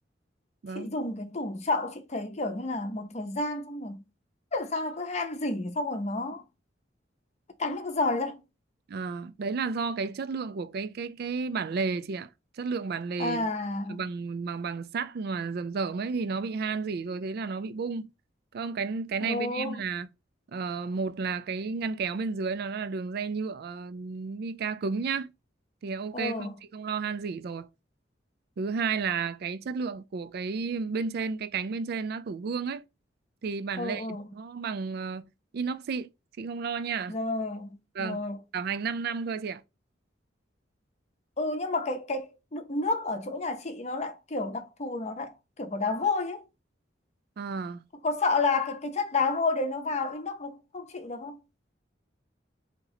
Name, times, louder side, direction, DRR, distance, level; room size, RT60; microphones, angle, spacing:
voice 1, 0.7-4.0 4.5-6.4 7.6-8.4 13.2-14.1 19.2-19.8 26.1-26.5 33.8-34.3 37.1-38.4 41.4-46.4 48.0-51.4, left 3 dB, 35° left, 0.7 m, -30 dB
voice 2, 8.9-12.3 12.6-13.5 13.9-18.1 18.5-20.1 20.5-25.3 25.8-27.7 28.6-32.9 33.4-35.3 35.5-36.1 36.4-37.2 37.9-38.2 38.5-39.6 47.4-47.8, right 5 dB, 55° right, 0.3 m, -32 dB
4.1 x 2.9 x 3.9 m
head